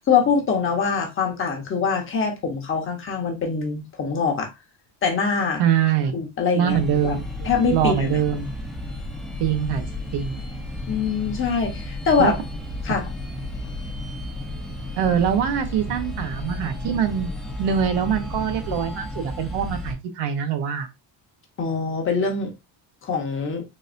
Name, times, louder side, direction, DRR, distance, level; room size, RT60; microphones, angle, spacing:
voice 1, 0.0-4.5 5.0-5.6 6.1-6.8 7.0-7.1 7.4-8.2 10.9-12.3 12.8-13.1 21.6-22.5 23.0-23.6, left 5 dB, 30° left, 0.9 m, -23 dB
voice 2, 5.6-6.2 6.5-8.5 9.4-9.8 10.1-10.4 12.2-12.3 12.9-13.0 15.0-17.3 17.6-20.9, right 8 dB, 85° right, 0.9 m, -23 dB
sound 1, 6.7-19.9, left 1 dB, ahead, 0.6 m, -33 dB
3.9 x 2.6 x 2.5 m
cardioid pair, 165°, 41 cm